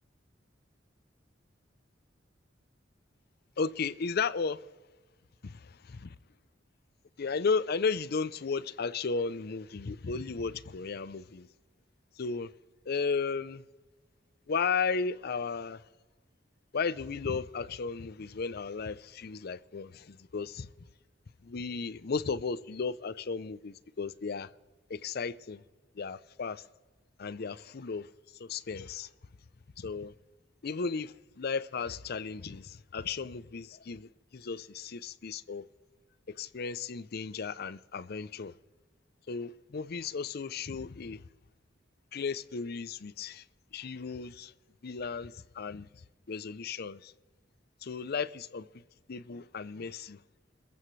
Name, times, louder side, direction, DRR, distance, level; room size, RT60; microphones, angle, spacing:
voice 1, 3.6-4.7 5.4-5.6 7.2-11.5 12.2-12.5 12.9-13.6 14.5-15.8 16.7-20.7 21.4-24.5 24.9-25.6 25.9-26.7 27.2-29.1 29.8-30.1 30.6-35.6 36.3-38.6 39.3-41.3 42.1-43.5 43.7-44.5 44.8-47.1 47.8-48.7 49.1-50.2, left 5 dB, 55° left, 0.6 m, -34 dB
27.5 x 14.5 x 3.2 m
head